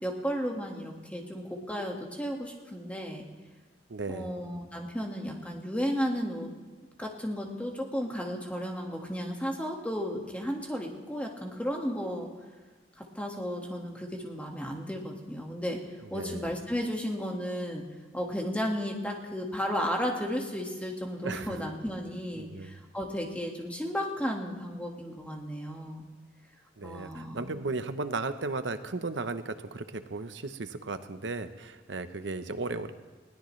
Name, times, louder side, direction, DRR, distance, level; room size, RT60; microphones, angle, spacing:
voice 1, 0.0-3.2 4.1-6.5 7.0-12.3 13.0-15.8 16.1-17.8 18.1-26.1 26.8-27.5, equal, 5° left, 1 dB, 1.8 m, -34 dB
voice 2, 3.9-4.3 16.1-16.5 21.2-21.6 22.3-22.8 26.8-32.9, right 3 dB, 75° right, 10 dB, 0.8 m, -35 dB
21.0 x 17.0 x 3.2 m, 1.3 s
head